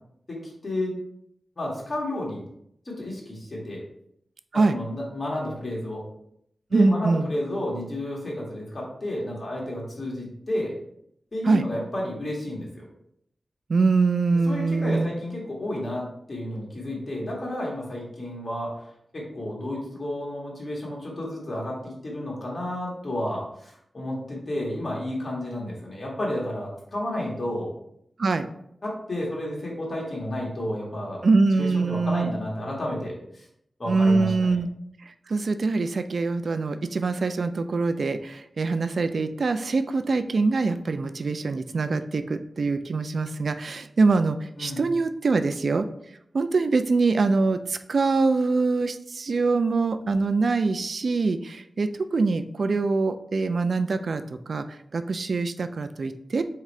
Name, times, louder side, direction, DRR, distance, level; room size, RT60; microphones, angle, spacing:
voice 1, 0.3-1.0 1.6-2.4 2.8-3.8 4.7-6.0 6.7-10.7 11.3-12.8 14.5-18.8 19.1-27.7 28.8-31.2 31.6-33.4 33.8-34.6 44.6-44.8, left 1 dB, 45° left, -3 dB, 1.7 m, -31 dB
voice 2, 6.7-7.3 11.4-11.7 13.7-15.1 28.2-28.5 31.2-32.3 33.9-34.7 35.0-45.9 46.3-56.4, right 3 dB, 70° right, 10 dB, 0.3 m, -24 dB
4.5 x 3.7 x 3.1 m, 0.74 s
wide cardioid pair, 70°, 0 cm